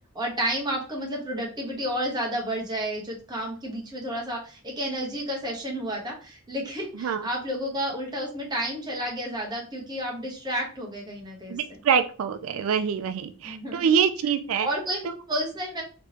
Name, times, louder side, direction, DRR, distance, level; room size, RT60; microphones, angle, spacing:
voice 1, 0.1-11.8 13.4-13.9 14.6-15.8, equal, 20° right, -2 dB, 1.0 m, -31 dB
voice 2, 6.9-7.3 11.5-14.7 15.0-15.1, right 7 dB, 90° right, 9 dB, 0.4 m, -25 dB
3.4 x 3.0 x 2.8 m, 0.39 s
head